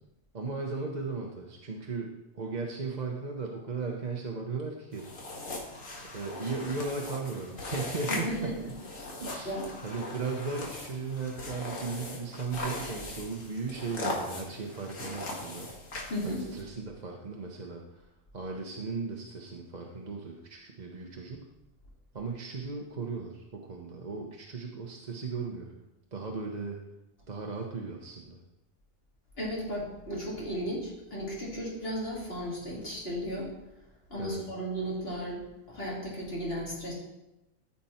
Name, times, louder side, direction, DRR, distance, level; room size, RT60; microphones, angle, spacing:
voice 1, 0.3-5.1 6.1-8.5 9.2-9.6 9.8-15.7 16.2-18.1 18.3-21.5 22.1-25.7 26.1-26.8 27.3-28.4 34.2-34.4, right 4 dB, 35° right, 1 dB, 0.9 m, -36 dB
sound 1, 4.9-16.6, left 2 dB, 80° left, 2.2 m, -39 dB
voice 2, 8.1-8.5 9.4-9.7 12.7-12.9 16.1-16.4 29.4-33.5 34.1-36.9, equal, 50° left, -5 dB, 3.4 m, -35 dB
14.0 x 6.0 x 4.3 m, 0.94 s
omnidirectional pair, 1.3 m